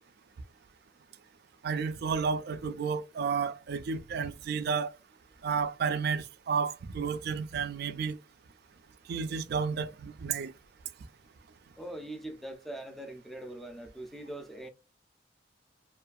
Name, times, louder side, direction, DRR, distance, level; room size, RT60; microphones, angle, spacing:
voice 1, 1.6-4.9 5.4-8.2 9.1-10.5, right 5 dB, 60° right, 0.4 m, -31 dB
voice 2, 11.8-14.7, right 1 dB, ahead, 0.4 m, -42 dB
2.7 x 2.3 x 2.3 m
head